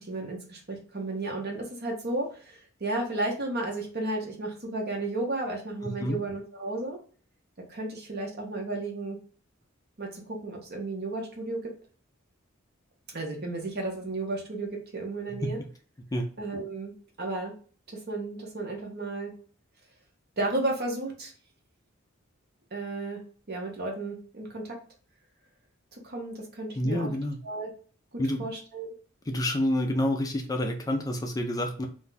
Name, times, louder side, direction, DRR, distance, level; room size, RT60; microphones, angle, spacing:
voice 1, 0.0-7.0 7.7-9.2 10.0-11.7 13.1-15.6 16.4-17.5 17.9-19.3 20.4-21.3 22.7-23.2 23.5-24.8 25.9-27.1 27.4-27.7 28.1-28.9, right 2 dB, 50° right, 1 dB, 0.9 m, -33 dB
voice 2, 5.8-6.2 15.3-15.5 16.1-16.3 26.8-27.4 28.2-28.5 29.3-31.9, left 1 dB, 15° left, 3 dB, 0.4 m, -28 dB
2.6 x 2.3 x 3.9 m, 0.42 s
head